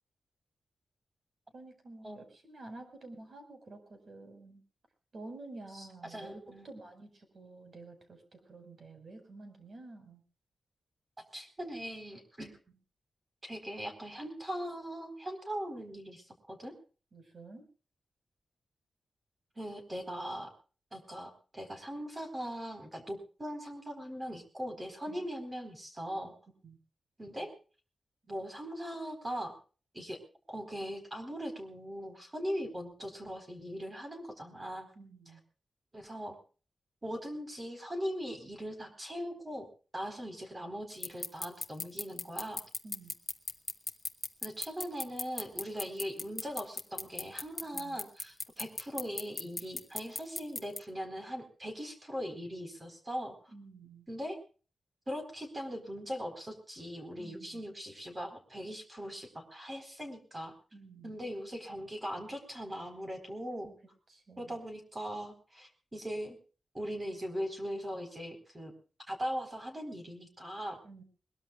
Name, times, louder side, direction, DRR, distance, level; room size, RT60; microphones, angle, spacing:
voice 1, 1.5-4.6 5.1-10.2 17.1-17.7 25.1-25.2 26.6-26.8 34.9-35.4 42.8-43.2 47.7-48.0 53.5-54.1 57.2-57.6 60.7-61.1 63.6-63.7 64.1-64.6 70.8-71.0, right 2 dB, 45° right, 7 dB, 5.0 m, -50 dB
voice 2, 5.8-6.7 11.3-12.6 13.4-16.7 19.6-20.5 20.9-26.3 27.2-27.5 28.3-29.5 29.9-30.2 30.5-34.9 35.9-36.3 37.0-39.7 39.9-42.6 44.4-53.5 54.1-54.4 55.1-60.5 61.0-63.7 64.4-66.4 66.7-68.7 69.1-70.8, equal, 20° right, 6 dB, 4.1 m, -40 dB
sound 1, 41.0-50.8, left 3 dB, 25° left, 0.9 m, -35 dB
21.5 x 21.5 x 2.4 m, 0.38 s
wide cardioid pair, 140°, 0 cm